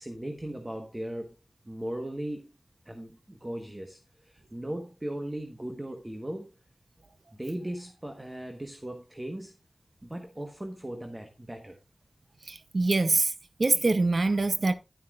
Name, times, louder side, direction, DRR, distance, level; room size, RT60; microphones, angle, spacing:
voice 1, 0.0-1.3 1.7-2.5 2.8-6.5 7.3-9.5 10.0-11.8, right 1 dB, 20° right, 1.3 m, -38 dB
voice 2, 12.5-13.3 13.6-14.7, right 3 dB, 55° right, 0.8 m, -24 dB
11.5 x 9.6 x 2.4 m
wide cardioid pair, 85°, 0 cm